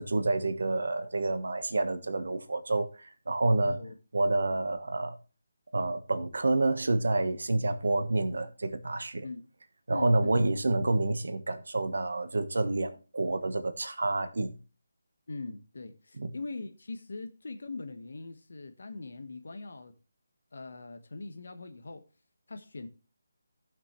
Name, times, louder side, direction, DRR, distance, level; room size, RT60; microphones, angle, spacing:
voice 1, 0.0-3.8 4.1-5.2 5.7-9.3 9.9-14.6 16.2-16.3, right 2 dB, 70° right, 1.2 m, -28 dB
voice 2, 3.6-3.9 9.2-9.4 9.9-10.4 15.3-19.9 20.5-22.0 22.5-22.9, left 3 dB, 65° left, 1.4 m, -41 dB
14.5 x 6.0 x 3.1 m
figure-of-eight pair, 155°, 0 cm